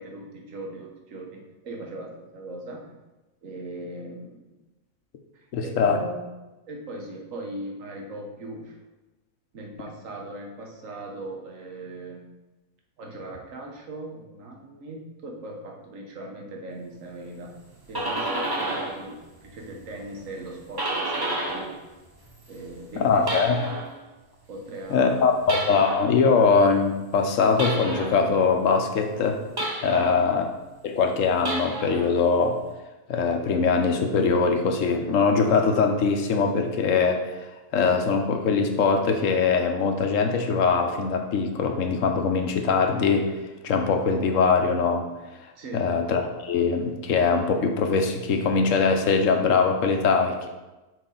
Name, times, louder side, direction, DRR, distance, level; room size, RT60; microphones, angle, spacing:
voice 1, 0.0-3.0 3.4-4.6 5.3-6.3 6.7-8.8 9.5-12.3 13.0-17.6 17.9-21.8 22.5-23.5 24.5-25.4 29.8-30.2 45.6-45.9, right 2 dB, 60° right, 1 dB, 1.4 m, -39 dB
voice 2, 5.5-6.0 23.0-23.6 24.9-29.4 29.8-30.4 30.8-32.6 33.1-37.5 37.7-43.3 43.6-45.1 45.7-50.5, left 5 dB, 65° left, 5 dB, 1.0 m, -22 dB
sound 1, 17.6-19.1 19.4-21.8 22.1-24.0 25.4-26.2 27.6-28.2 29.6-30.2 31.3-32.1, right 2 dB, 35° right, 0.4 m, -31 dB
6.5 x 4.7 x 3.8 m, 1.1 s
omnidirectional pair, 1.6 m